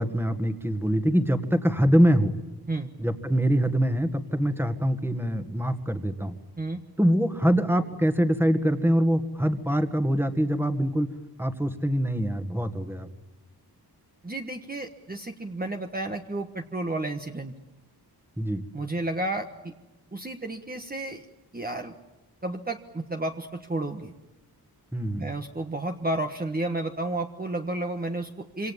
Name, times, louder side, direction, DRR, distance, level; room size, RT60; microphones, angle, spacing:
voice 1, 0.0-2.4 3.0-6.4 7.0-11.1 11.4-13.1 18.4-18.6 24.9-25.3, equal, 5° right, 8 dB, 1.9 m, -24 dB
voice 2, 14.2-17.5 18.7-19.7 20.1-21.2 21.5-21.9 22.4-24.1 25.2-28.7, right 2 dB, 25° right, 4 dB, 1.4 m, -32 dB
27.0 x 26.0 x 7.3 m, 1.1 s
wide cardioid pair, 125°, 39 cm